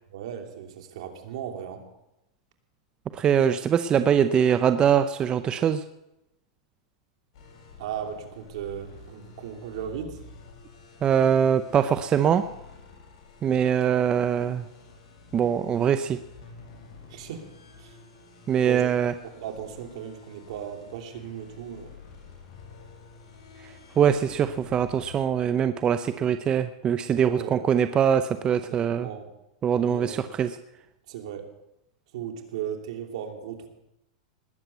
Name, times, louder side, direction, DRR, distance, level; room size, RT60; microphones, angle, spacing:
voice 1, 0.1-1.8 7.8-10.2 17.1-17.5 17.8-18.0 18.6-18.9 19.2-21.9 27.3-27.5 28.7-29.3 29.9-30.3 31.1-31.5 32.1-33.7, right 9 dB, 70° right, 4 dB, 2.9 m, -36 dB
voice 2, 3.1-5.8 11.0-12.4 13.4-14.6 15.3-16.2 18.5-19.1 23.6-29.1 29.6-30.5, right 8 dB, 25° right, 10 dB, 0.6 m, -23 dB
sound 1, 7.3-25.2, left 4 dB, 60° left, 7.8 m, -49 dB
19.5 x 7.9 x 8.1 m, 0.89 s
hypercardioid pair, 130°, 3 cm